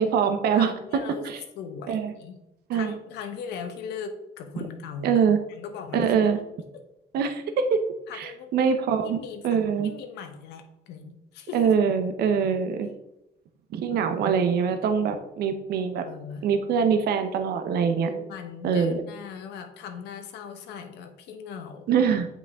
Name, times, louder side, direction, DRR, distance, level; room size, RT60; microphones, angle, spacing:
voice 1, 0.0-0.7 1.2-1.4 1.9-2.1 2.7-2.9 5.0-5.4 5.9-6.4 7.1-7.8 8.1-9.2 9.4-9.9 11.5-12.9 13.7-16.1 16.4-18.1 18.6-19.0 21.9-22.3, right 6 dB, 70° right, 8 dB, 0.8 m, -23 dB
voice 2, 0.5-1.3 1.6-2.4 2.7-5.1 5.5-6.4 8.1-8.5 9.0-11.7 16.0-16.5 16.8-16.9 18.0-22.0, left 6 dB, 85° left, 6 dB, 1.0 m, -39 dB
7.9 x 5.3 x 3.6 m, 0.86 s
cardioid pair, 110°, 17 cm